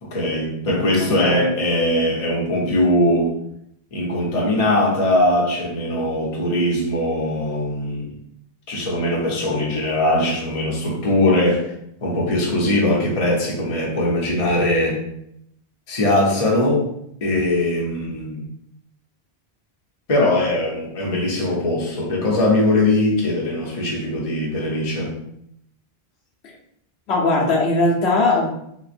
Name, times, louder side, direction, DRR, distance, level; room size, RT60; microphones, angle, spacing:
voice 1, 0.0-3.4 3.9-8.1 8.7-11.7 12.0-15.0 15.9-16.9 17.2-18.5 20.1-25.2, left 1 dB, 35° left, -3 dB, 0.8 m, -20 dB
voice 2, 1.0-1.5 27.1-28.5, left 2 dB, 80° left, -3 dB, 1.1 m, -19 dB
3.7 x 3.0 x 2.5 m, 0.75 s
omnidirectional pair, 1.1 m